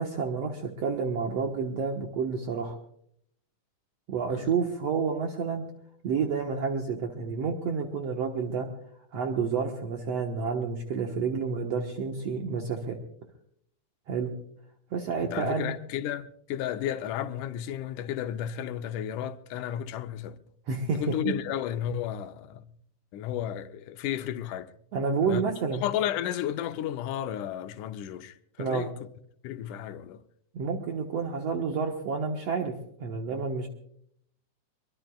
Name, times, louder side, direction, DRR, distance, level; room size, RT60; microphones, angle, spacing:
voice 1, 0.0-2.8 4.1-5.6 6.0-8.7 9.1-13.0 14.1-14.3 14.9-15.7 20.7-21.0 24.9-25.8 28.6-28.9 30.5-32.7 33.0-33.7, right 5 dB, 60° right, 2.2 m, -29 dB
voice 2, 15.2-20.4 20.9-22.7 23.1-24.7 25.2-25.4 25.8-28.9 29.4-30.2, left 10 dB, 85° left, 2.3 m, -33 dB
24.0 x 23.0 x 2.3 m
omnidirectional pair, 3.5 m